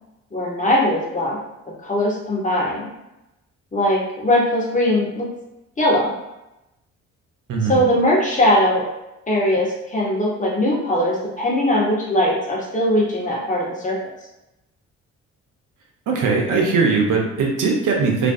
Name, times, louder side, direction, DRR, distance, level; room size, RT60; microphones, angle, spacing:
voice 1, 0.3-1.4 1.8-2.9 3.7-5.3 5.8-6.1 7.7-8.8 9.3-14.0, left 1 dB, 20° left, -4 dB, 1.0 m, -20 dB
voice 2, 16.1-18.3, right 4 dB, 55° right, 1 dB, 0.7 m, -20 dB
2.4 x 2.2 x 2.6 m, 0.90 s
hypercardioid pair, 45°, 38 cm